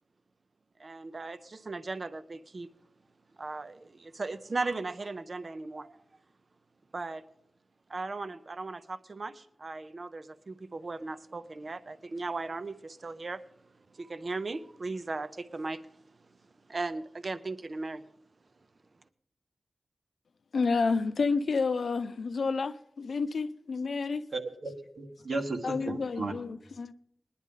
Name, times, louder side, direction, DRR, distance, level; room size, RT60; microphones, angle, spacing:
voice 1, 0.8-2.7 3.4-6.0 6.9-7.2 7.9-13.4 13.9-15.8 16.7-18.0, right 3 dB, 50° right, 0.6 m, -37 dB
voice 2, 20.5-24.2 25.6-26.9, left 4 dB, 80° left, 0.5 m, -30 dB
voice 3, 24.3-26.3, right 3 dB, 80° right, 1.5 m, -35 dB
19.5 x 10.5 x 3.7 m
wide cardioid pair, 85°, 0 cm